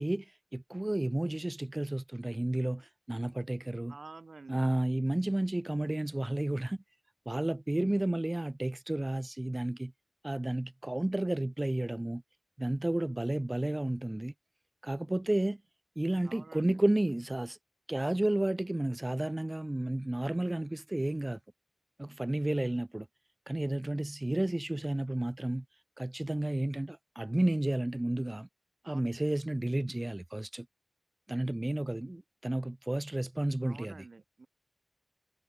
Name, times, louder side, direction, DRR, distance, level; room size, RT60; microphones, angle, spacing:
voice 1, 0.0-4.0 4.5-6.8 7.3-9.9 10.2-12.2 12.6-14.3 14.8-15.6 16.0-17.6 17.9-21.4 22.0-23.1 23.5-28.5 28.8-30.7 31.3-34.1, right 1 dB, 30° right, 0.5 m, -32 dB
voice 2, 3.9-4.7 16.2-16.8 28.8-29.2 33.6-34.5, right 3 dB, 85° right, 1.3 m, -50 dB
wide cardioid pair, 55°, 0 cm